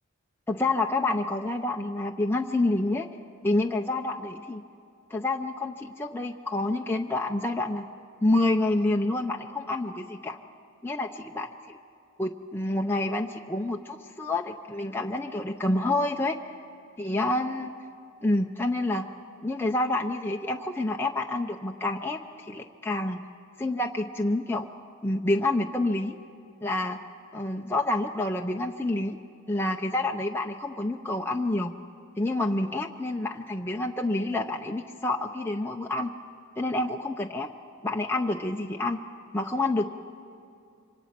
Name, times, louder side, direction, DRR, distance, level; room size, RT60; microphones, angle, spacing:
voice 1, 0.5-3.1 3.4-4.6 5.1-7.9 8.2-10.4 10.8-11.5 12.2-16.4 17.0-17.7 18.2-19.1 19.4-23.2 23.6-24.7 25.0-26.2 26.6-27.0 27.3-29.2 29.5-31.7 32.2-36.1 36.6-37.5 37.8-39.0 39.3-39.9, left 2 dB, 10° left, 2 dB, 0.5 m, -28 dB
26.5 x 25.0 x 5.9 m, 2.5 s
head